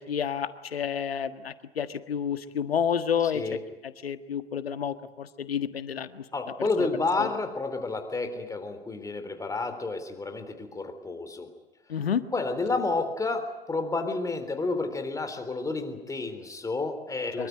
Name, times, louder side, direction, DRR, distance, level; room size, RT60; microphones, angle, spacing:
voice 1, 0.0-3.4 4.0-6.2 7.2-7.3 11.9-12.2 17.4-17.5, left 8 dB, 70° left, 11 dB, 1.6 m, -30 dB
voice 2, 3.2-3.6 6.3-11.5 12.3-17.5, left 3 dB, 10° left, 7 dB, 3.7 m, -30 dB
24.5 x 23.0 x 9.3 m, 0.97 s
figure-of-eight pair, 95°, 31 cm